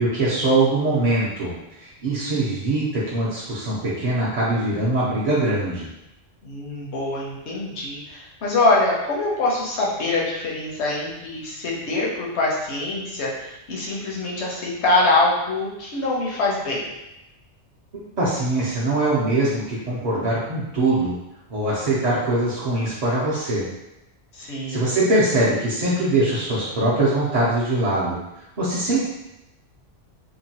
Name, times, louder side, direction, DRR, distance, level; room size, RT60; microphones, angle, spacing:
voice 1, 0.0-1.5 1.8-5.9 17.9-21.1 21.5-23.7 24.5-28.2 28.6-29.0, right 2 dB, 45° right, -9 dB, 0.6 m, -22 dB
voice 2, 6.4-16.9 24.3-24.9, left 2 dB, 70° left, -3 dB, 1.0 m, -24 dB
2.9 x 2.2 x 2.7 m, 0.90 s
omnidirectional pair, 1.2 m